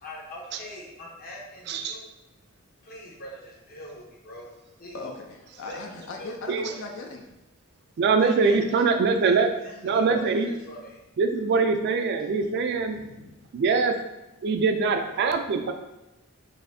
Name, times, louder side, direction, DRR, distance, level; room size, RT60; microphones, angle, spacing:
voice 1, 0.0-2.1 2.8-4.5 4.8-5.0 5.7-6.3 6.6-6.8 8.2-8.6 9.2-11.0, equal, 45° left, -3 dB, 0.9 m, -42 dB
voice 2, 4.9-7.3 12.9-13.3, left 3 dB, 60° left, 3 dB, 0.4 m, -38 dB
voice 3, 8.0-9.5 9.8-10.5 11.2-13.0 13.5-13.9 14.4-15.7, right 4 dB, 50° right, 6 dB, 0.3 m, -23 dB
4.0 x 2.6 x 2.6 m, 0.94 s
head